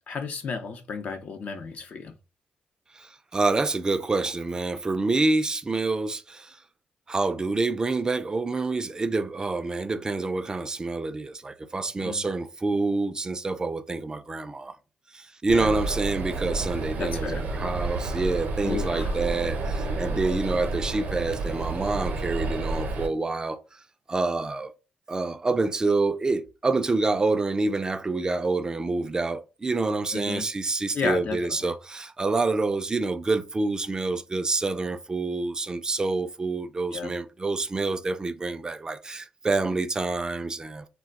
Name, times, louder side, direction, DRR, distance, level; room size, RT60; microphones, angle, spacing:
voice 1, 0.1-2.1 12.0-12.3 15.5-15.7 17.0-17.4 18.6-19.2 30.1-30.4 30.9-31.7 36.9-37.1, left 5 dB, 55° left, 0.6 m, -33 dB
voice 2, 3.3-6.5 7.1-14.7 15.1-23.6 24.1-24.7 25.1-40.9, right 3 dB, 25° right, 0.4 m, -27 dB
sound 1, 15.5-23.1, right 3 dB, 70° right, 0.6 m, -30 dB
2.2 x 2.2 x 3.6 m
cardioid pair, 85°, 3 cm